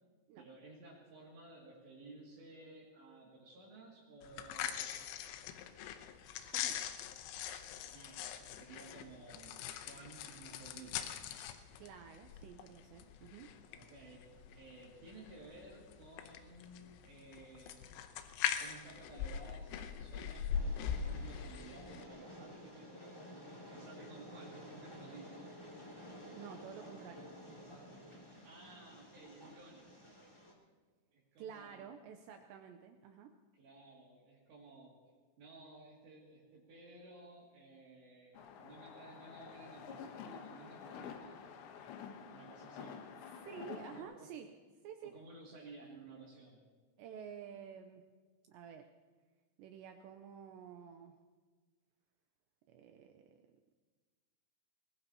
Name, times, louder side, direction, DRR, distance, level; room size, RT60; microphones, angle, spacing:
voice 1, 0.4-5.2 7.9-11.1 13.7-14.2 14.5-17.9 18.6-23.3 23.7-25.5 28.4-30.0 31.1-32.0 33.5-35.0 35.4-41.3 42.3-43.0 43.9-44.3 45.0-46.6, right 2 dB, 60° right, -4 dB, 4.5 m, -55 dB
sound 1, 4.2-22.0, left 8 dB, 90° left, 3.6 m, -42 dB
voice 2, 6.5-6.9 11.8-13.5 26.3-27.3 31.4-33.3 43.5-44.5 44.8-45.1 47.0-48.0 48.5-48.9 49.6-51.2 52.7-53.5, right 8 dB, 90° right, 5 dB, 2.5 m, -51 dB
Train, 20.5-30.5, equal, 25° left, 0.6 m, -52 dB
sound 2, 38.3-44.0, left 7 dB, 70° left, 3.0 m, -49 dB
24.0 x 20.0 x 2.9 m, 1.4 s
omnidirectional pair, 5.8 m